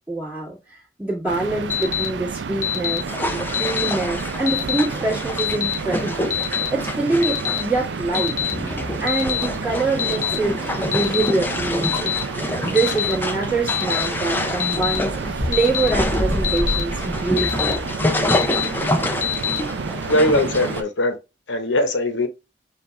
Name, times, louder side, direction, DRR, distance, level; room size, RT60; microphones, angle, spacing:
voice 1, 0.1-3.0 3.5-6.4 6.7-8.4 9.0-12.1 12.6-17.8, right 3 dB, 10° right, 1.9 m, -25 dB
sound 1, 1.3-20.8, right 5 dB, 70° right, 0.4 m, -30 dB
Alarm, 1.7-2.1 2.6-3.0 3.5-3.9 4.5-4.8 5.4-5.7 6.3-6.7 7.2-7.6 8.1-8.5 9.1-9.4 10.0-10.3 10.9-11.3 11.8-12.2 12.8-13.1 13.7-14.0 14.6-15.0 15.5-15.9 16.4-16.8 17.4-17.7 18.3-18.6 19.2-19.6, left 11 dB, 40° left, 0.8 m, -24 dB
sound 2, 3.1-20.8, left 1 dB, 10° left, 0.4 m, -27 dB
voice 2, 20.1-21.2 21.5-22.3, left 1 dB, 80° left, 0.8 m, -20 dB
6.9 x 2.4 x 3.2 m
head